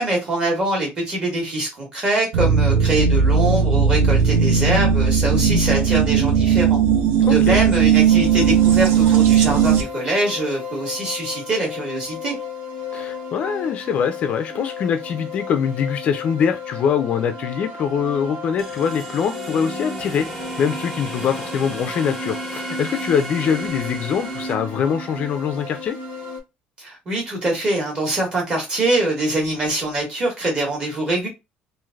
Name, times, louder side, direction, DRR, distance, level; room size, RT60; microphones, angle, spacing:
voice 1, 0.0-6.8 7.3-12.4 26.8-31.3, right 2 dB, 30° right, 1.4 m, -23 dB
sound 1, 2.3-9.8, right 7 dB, 80° right, 0.6 m, -17 dB
voice 2, 7.2-7.6 12.9-26.0, left 7 dB, 40° left, 0.4 m, -23 dB
sound 2, 8.1-26.4, left 3 dB, 50° right, 1.1 m, -34 dB
sound 3, 18.6-24.5, equal, 5° right, 0.7 m, -35 dB
3.1 x 2.5 x 2.4 m
cardioid pair, 175°, 3 cm